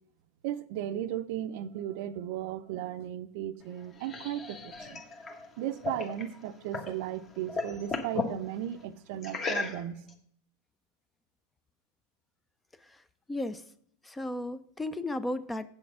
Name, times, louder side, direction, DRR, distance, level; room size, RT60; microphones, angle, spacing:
voice 1, 0.4-5.0 5.6-10.0, right 11 dB, 60° right, 0.5 m, -36 dB
sound 1, 3.6-7.0 7.3-8.4 9.2-10.1, left 4 dB, 30° left, 1.2 m, -36 dB
voice 2, 13.3-13.6 14.0-15.7, left 1 dB, 10° left, 0.4 m, -34 dB
8.2 x 7.1 x 4.8 m
supercardioid pair, 125°, 0 cm